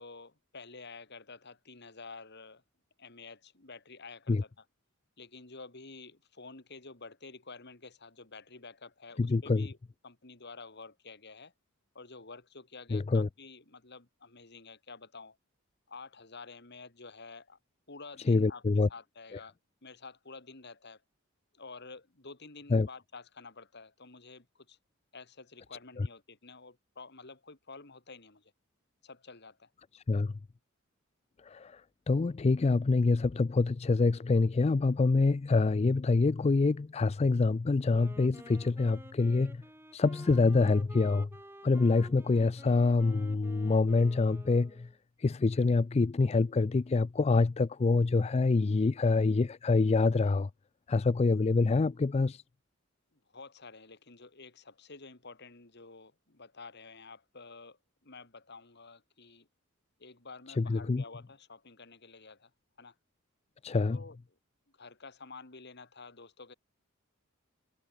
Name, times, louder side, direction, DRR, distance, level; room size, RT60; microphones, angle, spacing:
voice 1, 0.0-2.6 3.0-4.5 5.2-9.8 10.0-11.5 11.9-15.4 15.9-17.6 17.9-18.6 18.9-19.5 19.8-21.0 21.5-24.8 25.1-28.5 29.0-29.7 53.1-59.5 60.0-62.5 62.8-62.9 63.9-64.2 64.7-66.5, left 4 dB, 55° left, 2.7 m, -50 dB
voice 2, 9.2-9.7 12.9-13.3 18.3-18.9 19.3-19.4 22.7-22.9 26.0-26.1 29.9-30.3 31.4-31.8 32.1-39.6 39.9-41.3 41.6-44.9 45.2-50.5 50.9-52.4 60.6-61.0 63.6-64.0, left 3 dB, 30° left, 0.4 m, -26 dB
Wind instrument woodwind instrument, 37.8-45.0, right 1 dB, 10° right, 4.4 m, -51 dB
head